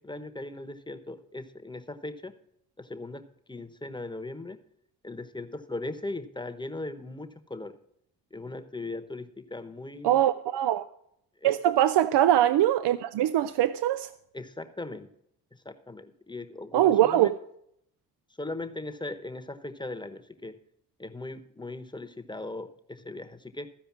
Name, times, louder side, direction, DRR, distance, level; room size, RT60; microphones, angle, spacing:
voice 1, 0.0-2.3 2.8-4.6 5.0-7.8 8.3-10.2 11.4-11.6 14.3-15.1 15.5-17.3 18.4-20.6 21.0-23.7, left 2 dB, 10° left, 1.0 m, -39 dB
voice 2, 10.0-10.9 11.4-14.1 16.7-17.3, right 12 dB, 85° right, 0.5 m, -22 dB
14.0 x 5.0 x 7.2 m
cardioid pair, 70°, 40 cm